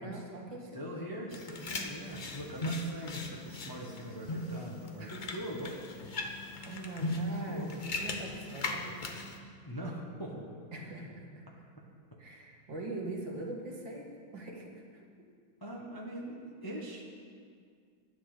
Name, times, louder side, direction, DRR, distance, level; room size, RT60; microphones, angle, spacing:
voice 1, 0.0-1.0 5.0-5.2 6.7-9.2 10.7-11.2 12.2-15.0, right 2 dB, 65° right, 0 dB, 2.4 m, -42 dB
voice 2, 0.7-5.8 7.5-7.8 9.6-10.5 15.6-17.0, equal, 15° left, -2 dB, 1.1 m, -41 dB
sound 1, 1.3-9.4, left 2 dB, 60° left, 0.5 m, -38 dB
12.0 x 9.9 x 6.7 m, 2.1 s
omnidirectional pair, 2.2 m